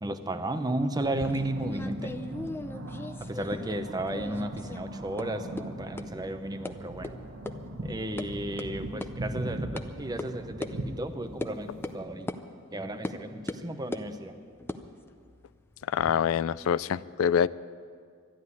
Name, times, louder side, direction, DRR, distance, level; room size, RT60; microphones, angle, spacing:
voice 1, 0.0-2.2 3.3-7.1 7.8-12.3 12.7-14.3, right 1 dB, 20° right, 8 dB, 0.8 m, -33 dB
sound 1, 1.0-3.8 4.1-4.8 5.2-5.3 5.6-5.7 6.0-6.1 6.6-6.7 7.0-7.1 7.5-7.6 7.9-8.3 8.6-8.7 9.0-9.1 9.8-9.9 10.2-10.3 10.6-10.7 11.4-11.5 11.8-12.0 12.3-12.4 13.0-13.2 13.5-14.1 14.6-16.1, left 1 dB, 10° left, 0.6 m, -38 dB
sound 2, 1.0-12.0, right 1 dB, 80° right, 1.3 m, -40 dB
voice 2, 15.9-17.5, left 8 dB, 85° left, 18 dB, 0.4 m, -25 dB
13.0 x 11.5 x 9.6 m, 2.1 s
head